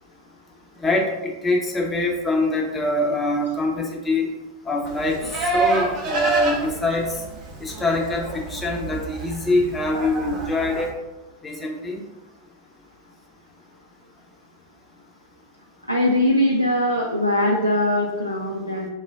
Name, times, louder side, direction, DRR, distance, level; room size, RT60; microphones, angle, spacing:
voice 1, 0.8-4.3 4.7-7.1 7.6-10.9 11.4-12.0, left 2 dB, 15° left, -1 dB, 0.7 m, -24 dB
Livestock farm animals working animals, 4.8-10.9, right 2 dB, 40° right, 0.8 m, -28 dB
voice 2, 15.9-18.9, left 1 dB, 90° left, -1 dB, 0.3 m, -21 dB
4.5 x 2.1 x 3.4 m, 1.0 s
figure-of-eight pair, 90°, 0 cm